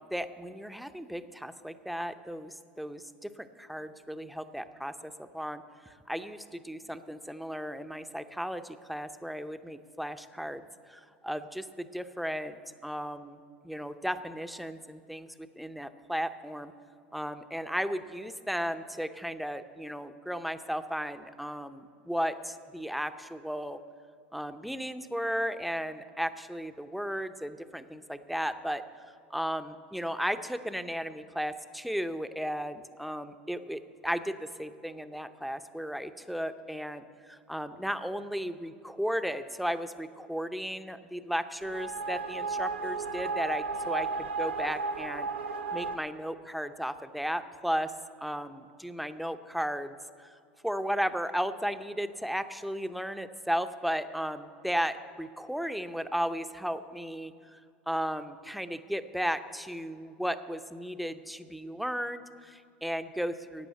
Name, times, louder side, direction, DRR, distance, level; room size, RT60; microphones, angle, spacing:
voice 1, 0.0-12.6 12.8-16.7 17.1-23.8 24.3-28.8 29.3-45.3 45.7-47.9 48.2-50.3 50.6-57.6 57.9-63.7, equal, ahead, 10 dB, 0.7 m, -35 dB
sound 1, 41.6-46.0, right 4 dB, 85° right, 0.8 m, -34 dB
12.0 x 8.5 x 8.3 m, 2.4 s
hypercardioid pair, 85°, 6 cm